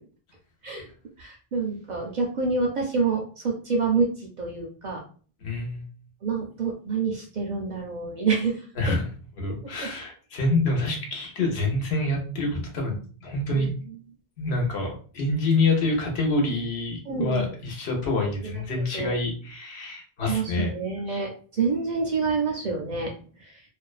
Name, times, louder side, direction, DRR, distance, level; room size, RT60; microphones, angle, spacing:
voice 1, 1.2-4.1 4.4-5.0 6.2-8.6 13.5-13.7 17.1-17.5 18.8-19.1 20.3-23.1, right 4 dB, 55° right, 0 dB, 0.5 m, -27 dB
voice 2, 5.4-5.9 8.8-9.1 9.4-13.7 14.4-20.7 21.1-21.2, left 2 dB, 80° left, 1 dB, 1.0 m, -27 dB
2.5 x 2.1 x 2.3 m, 0.42 s
omnidirectional pair, 1.1 m